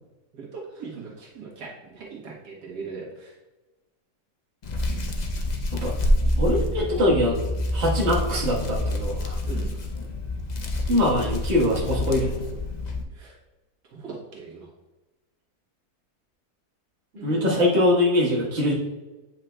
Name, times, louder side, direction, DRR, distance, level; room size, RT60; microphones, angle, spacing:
voice 1, 0.3-3.3 9.4-9.7 13.1-13.4 13.9-14.7 17.2-17.6, right 5 dB, 85° right, -3 dB, 1.9 m, -39 dB
Hands, 4.6-13.0, left 1 dB, 60° left, 0.4 m, -27 dB
voice 2, 6.4-7.4 7.7-9.4 10.9-12.4 17.2-18.7, left 1 dB, 45° right, -5 dB, 1.7 m, -22 dB
9.0 x 5.7 x 2.2 m, 1.1 s
omnidirectional pair, 1.7 m